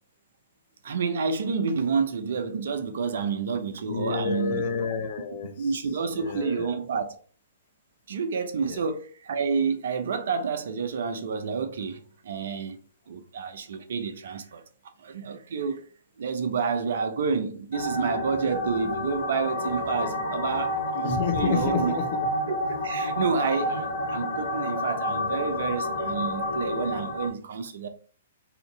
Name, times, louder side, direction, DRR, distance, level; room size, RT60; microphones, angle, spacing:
voice 1, 0.8-4.6 5.6-7.1 8.1-12.8 13.1-14.6 15.0-15.8 16.2-22.0 22.5-27.9, right 5 dB, 65° right, 0.6 m, -29 dB
voice 2, 3.9-5.5 6.1-6.7 8.7-8.8 21.0-22.1, left 6 dB, 55° left, 0.7 m, -29 dB
sound 1, 17.7-27.3, left 1 dB, 70° left, 1.1 m, -29 dB
2.8 x 2.6 x 3.7 m
hypercardioid pair, 125°, 0 cm